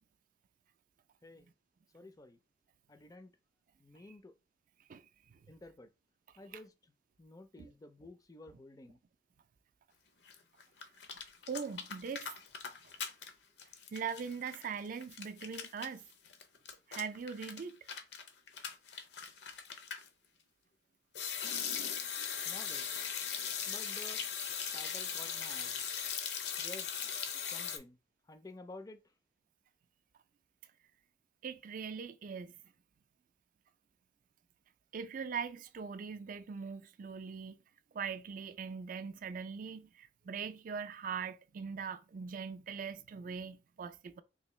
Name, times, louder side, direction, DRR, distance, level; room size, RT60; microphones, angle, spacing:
voice 1, 1.9-2.4 2.9-3.3 3.8-4.3 5.5-5.9 6.4-6.7 7.2-9.0 22.5-22.9 23.2-23.3 23.7-24.2 24.7-25.7 26.6-27.1 27.5-28.0 28.3-29.0, left 2 dB, 20° left, 0.4 m, -52 dB
sound 1, 10.3-10.4 10.6-13.3 13.6-20.1 21.1-27.8, left 7 dB, 75° left, 0.6 m, -39 dB
voice 2, 11.5-12.3 13.9-16.1 16.9-17.8 31.4-32.5 34.9-37.6 37.9-44.2, right 6 dB, 50° right, 0.4 m, -41 dB
3.7 x 2.6 x 3.1 m
head